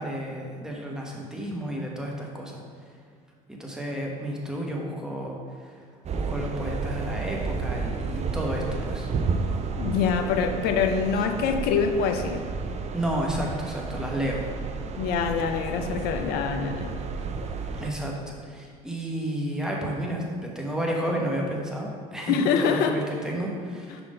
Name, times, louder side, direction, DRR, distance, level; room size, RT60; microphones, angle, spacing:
voice 1, 0.0-2.6 3.5-5.4 6.1-9.1 12.9-14.4 17.8-24.0, right 1 dB, 5° right, -2 dB, 1.5 m, -31 dB
sound 1, 6.0-17.9, right 4 dB, 40° right, 0.6 m, -31 dB
voice 2, 9.8-12.4 15.0-16.9 22.3-23.0, left 6 dB, 65° left, 6 dB, 0.7 m, -25 dB
5.5 x 4.4 x 5.2 m, 2.1 s
hypercardioid pair, 70°, 17 cm